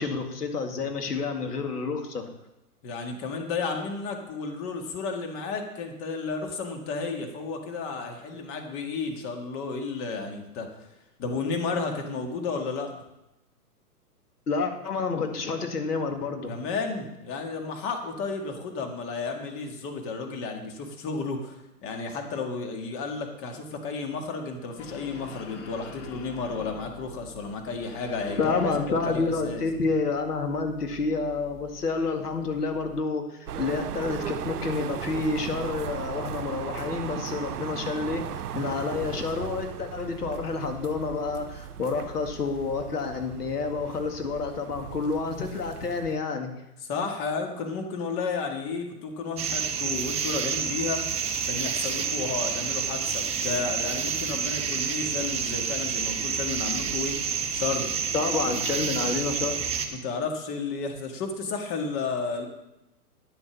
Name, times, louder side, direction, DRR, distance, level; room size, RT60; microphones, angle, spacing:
voice 1, 0.0-2.2 14.5-16.6 28.4-38.2 38.5-46.5 58.1-59.7, left 4 dB, 80° left, 4 dB, 2.1 m, -29 dB
voice 2, 2.8-10.7 11.2-12.9 16.5-29.6 46.8-51.1 51.5-58.0 58.5-58.6 59.9-62.5, left 4 dB, 30° left, 3 dB, 1.9 m, -32 dB
sound 1, 24.8-33.0, left 7 dB, 50° left, 1.5 m, -46 dB
sound 2, 33.5-46.2, right 9 dB, 75° right, 0.8 m, -37 dB
sound 3, 49.4-59.9, right 6 dB, 15° right, 0.8 m, -29 dB
10.5 x 7.1 x 6.0 m, 0.91 s
hypercardioid pair, 125°, 46 cm